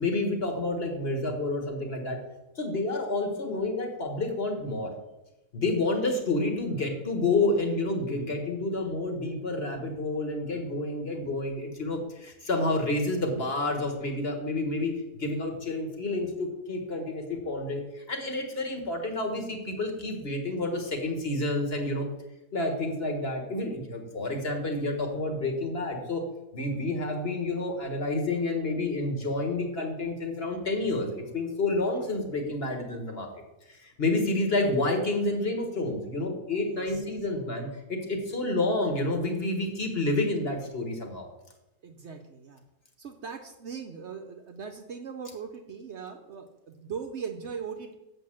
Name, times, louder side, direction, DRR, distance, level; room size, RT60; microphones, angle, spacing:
voice 1, 0.0-2.2 2.6-4.9 5.5-22.1 22.5-26.2 26.5-33.3 33.7-41.3, left 2 dB, 45° left, 3 dB, 1.7 m, -29 dB
voice 2, 36.6-37.0 41.8-42.6 43.0-47.9, right 6 dB, 55° right, 5 dB, 0.9 m, -39 dB
7.5 x 5.6 x 7.6 m, 0.98 s
omnidirectional pair, 1.5 m